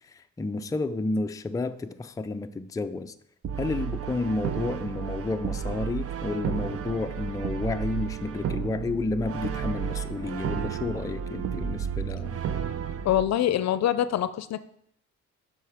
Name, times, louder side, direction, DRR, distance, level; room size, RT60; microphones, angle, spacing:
voice 1, 0.1-3.1 3.6-12.4, left 3 dB, 10° left, 0.4 m, -31 dB
Brass instrument, 3.4-13.2, right 8 dB, 50° right, 0.6 m, -32 dB
voice 2, 13.0-14.6, left 11 dB, 60° left, 0.6 m, -24 dB
7.8 x 5.7 x 4.9 m
cardioid pair, 90°, 30 cm